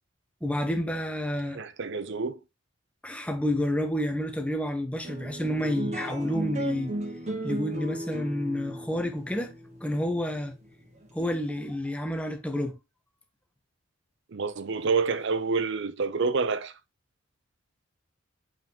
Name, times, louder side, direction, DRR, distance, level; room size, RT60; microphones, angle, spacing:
voice 1, 0.4-1.6 3.0-6.9 7.4-9.5 9.8-10.5 11.1-12.8, left 1 dB, 5° left, 1.0 m, -29 dB
voice 2, 1.5-2.4 14.3-16.7, right 4 dB, 55° right, 0.6 m, -28 dB
sound 1, 5.0-11.7, right 1 dB, 30° right, 1.8 m, -36 dB
7.5 x 5.4 x 3.0 m
head